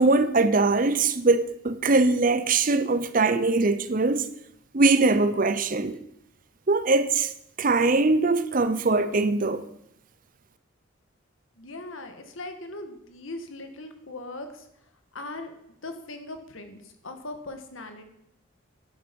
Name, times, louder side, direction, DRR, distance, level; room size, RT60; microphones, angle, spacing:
voice 1, 0.0-4.3 4.7-6.0 6.7-7.3 7.6-9.6, right 3 dB, 40° right, 0.7 m, -22 dB
voice 2, 11.6-14.6 15.1-15.5 15.8-18.0, left 2 dB, 80° left, 1.7 m, -39 dB
11.5 x 10.5 x 5.3 m
head